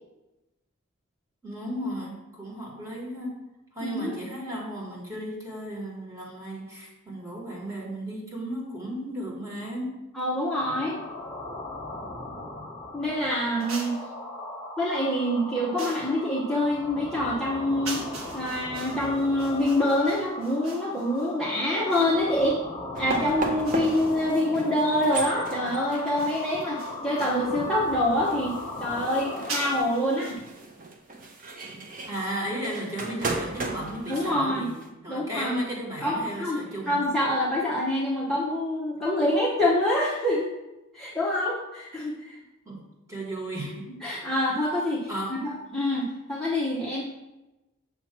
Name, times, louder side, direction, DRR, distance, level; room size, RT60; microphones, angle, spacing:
voice 1, 1.4-3.4 3.7-10.0 32.1-34.7 35.0-37.0 42.6-42.8 43.1-43.9 44.2-44.3 45.1-45.4, right 1 dB, 15° right, -4 dB, 1.7 m, -34 dB
voice 2, 3.8-4.1 10.1-11.0 12.9-14.0 14.8-18.0 18.3-22.6 23.0-28.5 28.8-30.4 34.1-34.7 35.1-35.5 36.0-40.5 40.9-42.4 44.0-47.0, left 1 dB, ahead, -9 dB, 0.8 m, -26 dB
sound 1, 10.6-29.8, left 2 dB, 25° left, 1.3 m, -38 dB
sound 2, 13.6-14.1 15.8-16.2 17.8-22.2 23.6-24.5 26.2-27.5 29.5-30.3, right 3 dB, 75° right, 1.2 m, -41 dB
sound 3, 22.9-34.9, right 2 dB, 40° right, 0.7 m, -36 dB
7.2 x 2.9 x 5.9 m, 0.99 s
head